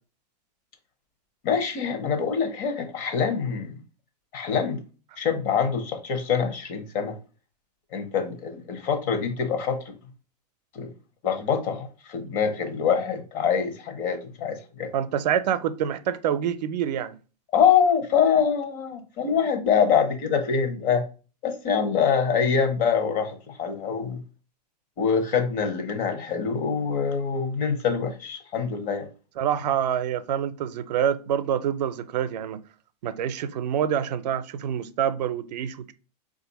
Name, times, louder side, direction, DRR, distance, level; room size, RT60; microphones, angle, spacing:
voice 1, 1.4-3.8 4.3-4.8 5.2-7.2 7.9-9.9 10.7-10.9 11.2-14.9 17.5-21.0 21.4-24.2 25.0-29.1, left 6 dB, 40° left, 0.9 m, -25 dB
voice 2, 14.9-17.2 29.4-32.6 33.0-35.9, right 9 dB, 80° right, 0.5 m, -26 dB
4.1 x 2.5 x 4.0 m
hypercardioid pair, 130°, 21 cm